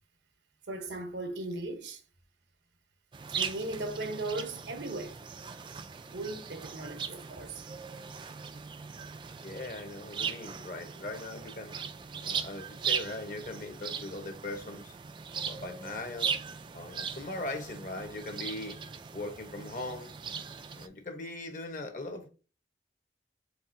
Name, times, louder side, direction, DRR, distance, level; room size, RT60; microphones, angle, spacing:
voice 1, 0.7-2.0 3.3-5.2 6.1-7.6, right 2 dB, 80° right, 0.9 m, -37 dB
sound 1, 3.1-20.9, right 6 dB, 25° right, 0.3 m, -39 dB
voice 2, 9.4-11.7 12.2-14.9 15.3-16.4 16.7-18.8 19.1-20.2 20.7-22.3, left 2 dB, 45° left, 0.9 m, -40 dB
4.6 x 3.7 x 2.6 m
head